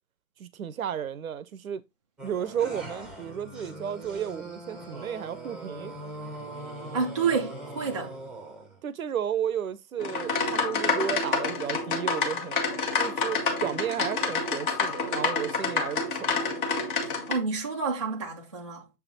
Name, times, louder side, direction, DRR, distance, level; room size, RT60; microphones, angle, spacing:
voice 1, 0.4-1.8 2.2-5.9 8.8-12.7 12.9-16.7, right 9 dB, 60° right, 0.7 m, -33 dB
sound 1, 2.2-8.8, right 1 dB, ahead, 0.9 m, -41 dB
voice 2, 6.9-8.2 17.3-18.9, right 5 dB, 20° right, 0.4 m, -29 dB
sound 2, 10.0-17.3, left 4 dB, 30° left, 1.3 m, -28 dB
6.9 x 3.5 x 3.9 m
figure-of-eight pair, 135°, 48 cm